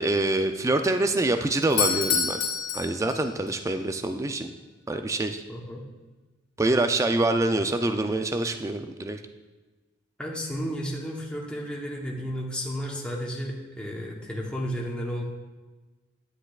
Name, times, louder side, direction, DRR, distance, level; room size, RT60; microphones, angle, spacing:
voice 1, 0.0-2.4 2.7-4.5 4.9-5.4 6.6-9.2, right 2 dB, 15° right, 7 dB, 0.3 m, -25 dB
Doorbell, 1.6-3.6, left 6 dB, 50° left, 0.8 m, -27 dB
voice 2, 5.5-5.8 10.2-15.2, equal, 5° left, -2 dB, 0.9 m, -33 dB
9.7 x 9.0 x 2.4 m, 1.2 s
head